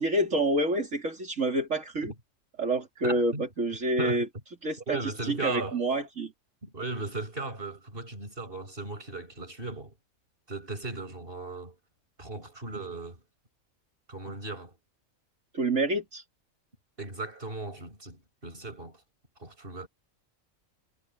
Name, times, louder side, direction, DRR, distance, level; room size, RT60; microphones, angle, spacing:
voice 1, 0.0-2.1 2.6-4.3 4.6-6.3 15.5-16.2, right 2 dB, 65° right, 3.8 m, -28 dB
voice 2, 3.0-3.4 4.0-4.3 4.9-5.8 6.6-9.9 10.5-11.8 12.2-13.2 14.1-14.7 17.0-19.0 19.4-19.9, right 3 dB, 40° right, 7.1 m, -36 dB
omnidirectional pair, 1.4 m